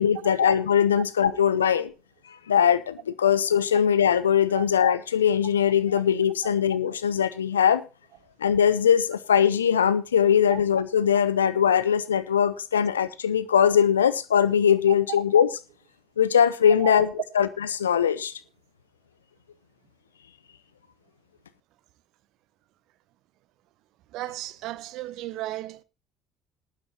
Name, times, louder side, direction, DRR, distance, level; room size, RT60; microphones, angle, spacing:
voice 1, 0.0-1.9 2.5-7.8 8.4-15.5 16.2-17.1 17.3-18.3, left 8 dB, 85° left, 0.7 m, -21 dB
voice 2, 24.1-25.8, right 16 dB, 60° right, 0.7 m, -34 dB
19.5 x 11.0 x 2.9 m
figure-of-eight pair, 55°, 0 cm